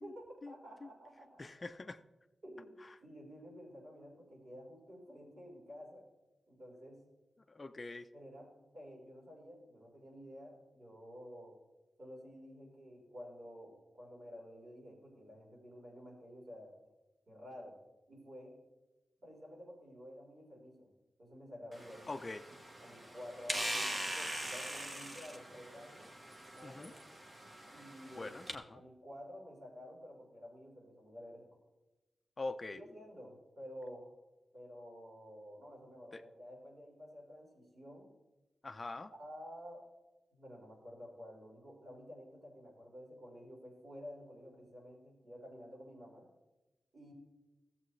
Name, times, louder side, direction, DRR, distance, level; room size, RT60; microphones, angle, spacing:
voice 1, 0.0-1.7 2.4-2.8 3.0-6.0 6.5-7.0 8.1-11.6 12.0-16.7 17.3-17.8 18.1-18.5 19.2-20.9 21.2-22.1 22.8-26.1 26.5-27.0 27.7-28.4 28.7-31.6 32.7-34.1 34.5-38.1 39.1-39.8 40.3-46.3 46.9-47.1, equal, 55° right, -4 dB, 4.1 m, -51 dB
voice 2, 1.4-2.0 7.5-8.1 22.1-22.4 26.6-26.9 28.2-28.8 32.4-32.8 36.1-36.2 38.6-39.1, left 2 dB, 30° left, 9 dB, 0.4 m, -43 dB
sound 1, 21.7-28.5, right 1 dB, 25° right, 1.1 m, -42 dB
16.5 x 7.4 x 3.2 m, 1.1 s
wide cardioid pair, 145°, 0 cm